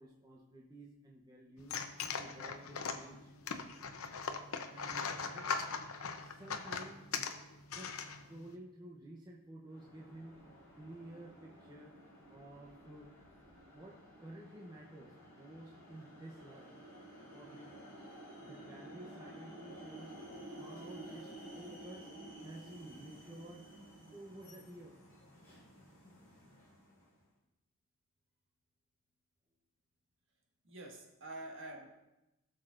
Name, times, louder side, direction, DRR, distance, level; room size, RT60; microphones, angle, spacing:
voice 1, 0.0-1.8 2.2-3.3 3.9-4.1 4.7-5.5 6.2-7.1 7.7-12.0 12.3-13.1 13.7-16.7 17.3-17.7 18.0-18.1 18.4-20.2 20.5-22.1 22.4-23.6 24.1-25.0, right 1 dB, 20° right, -3 dB, 0.8 m, -52 dB
sound 1, 1.6-8.5, left 5 dB, 80° left, 0.7 m, -40 dB
sound 2, 9.7-27.2, right 1 dB, 15° left, 3.9 m, -53 dB
voice 2, 30.6-32.0, right 2 dB, 60° right, 0 dB, 1.7 m, -47 dB
17.0 x 6.6 x 2.6 m, 0.95 s
head